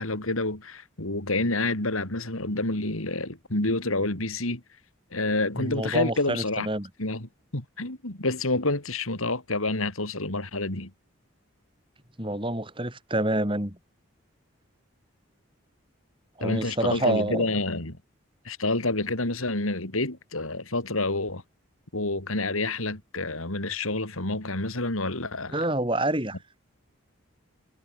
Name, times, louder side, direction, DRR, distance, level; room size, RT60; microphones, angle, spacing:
voice 1, 0.0-4.6 5.1-6.7 7.0-10.9 16.4-18.0 18.4-21.4 21.9-25.6, left 2 dB, 85° left, 4.1 m, -28 dB
voice 2, 5.6-6.9 12.2-13.8 16.4-17.5 25.5-26.4, right 1 dB, 25° right, 3.5 m, -27 dB
head